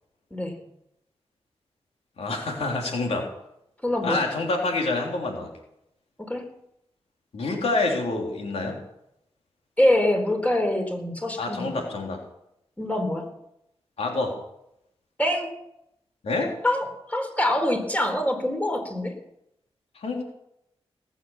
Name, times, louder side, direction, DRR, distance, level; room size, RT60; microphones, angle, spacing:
voice 1, 2.2-3.3 4.0-5.5 7.3-8.8 11.4-12.2 14.0-14.4 16.2-16.5 20.0-20.2, left 3 dB, 85° left, 1 dB, 3.4 m, -27 dB
voice 2, 3.8-4.2 6.2-6.5 9.8-11.8 12.8-13.3 15.2-15.5 16.6-19.2, left 1 dB, 15° left, 5 dB, 4.1 m, -25 dB
19.0 x 9.2 x 7.2 m, 0.80 s
cardioid pair, 55°, 10 cm